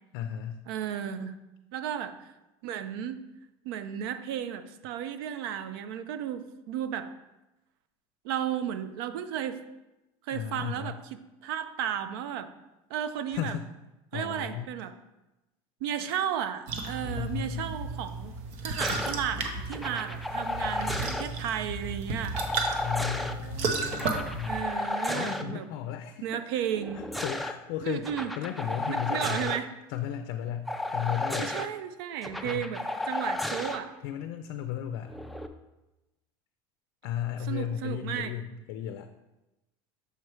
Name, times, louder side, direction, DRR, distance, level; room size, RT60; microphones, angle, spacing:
voice 1, 0.1-0.6 10.3-10.9 13.3-13.6 14.1-14.7 17.0-17.8 20.6-20.7 22.8-24.6 25.1-26.6 27.2-28.1 28.4-29.5 29.9-31.5 32.4-32.7 34.0-35.1 37.0-39.1, left 10 dB, 75° left, 7 dB, 0.4 m, -35 dB
voice 2, 0.7-1.4 1.7-2.1 2.6-3.2 3.6-7.1 8.2-9.6 10.3-12.5 12.9-13.6 14.1-15.0 15.8-22.4 24.5-25.7 26.2-27.0 27.8-28.3 28.9-29.7 31.4-33.9 37.5-38.4, right 9 dB, 90° right, 11 dB, 0.5 m, -34 dB
sound 1, 16.7-24.6, right 3 dB, 65° right, 0.9 m, -34 dB
sound 2, 18.8-19.1 19.7-21.2 22.3-23.3 23.9-25.4 26.7-27.5 28.0-29.6 30.7-31.7 32.2-33.8 35.1-35.5, left 1 dB, ahead, 0.3 m, -33 dB
6.8 x 3.1 x 4.7 m, 0.98 s
supercardioid pair, 130°, 12 cm